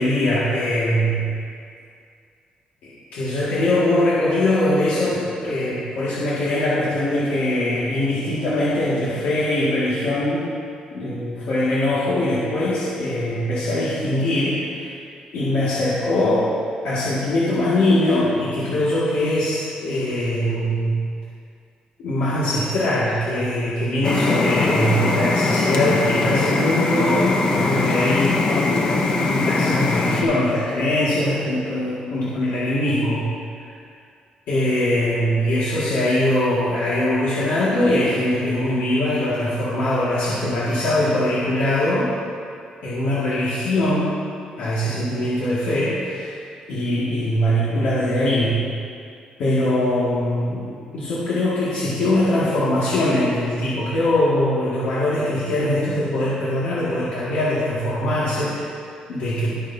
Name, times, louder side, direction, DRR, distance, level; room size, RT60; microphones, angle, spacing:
voice 1, 0.0-1.3 2.8-10.5 10.9-14.9 15.3-16.5 16.8-21.0 22.0-28.8 29.2-33.2 33.7-33.8 34.5-42.1 42.8-44.2 44.6-46.4 46.7-48.6 49.4-58.8 59.1-59.6, left 1 dB, 80° left, -10 dB, 2.3 m, -22 dB
sound 1, 24.0-30.2, left 3 dB, 35° left, 0.9 m, -21 dB
21.0 x 7.0 x 2.9 m, 2.3 s
cardioid pair, 175°, 2 cm